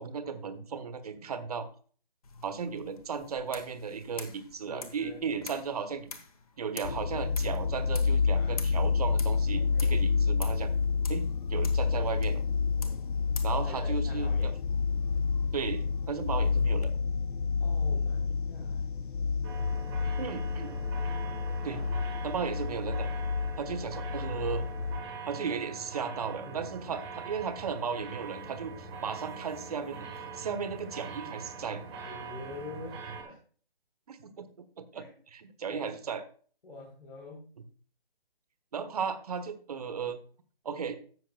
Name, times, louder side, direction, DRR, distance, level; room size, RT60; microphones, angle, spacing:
voice 1, 0.0-1.7 2.4-6.1 6.6-10.7 11.1-12.4 13.4-14.5 15.5-16.9 20.2-20.7 21.6-21.8 22.2-23.1 23.6-24.7 25.3-30.1 30.3-31.8 34.1-36.2 38.7-40.2 40.6-40.9, right 6 dB, 40° right, 10 dB, 0.9 m, -35 dB
sound 1, 2.2-16.9, left 5 dB, 40° left, 1.0 m, -48 dB
voice 2, 4.6-5.6 8.3-8.6 9.5-10.0 12.8-13.1 13.5-14.5 17.6-18.9 21.6-22.0 26.4-27.0 32.0-33.4 34.9-35.2 35.6-36.0 36.6-37.5, left 2 dB, 90° left, -2 dB, 3.5 m, -46 dB
sound 2, 6.8-25.0, left 5 dB, 55° left, 0.5 m, -29 dB
sound 3, 19.4-33.2, right 4 dB, 10° right, 1.1 m, -43 dB
13.0 x 7.7 x 2.3 m, 0.43 s
hypercardioid pair, 165°, 30 cm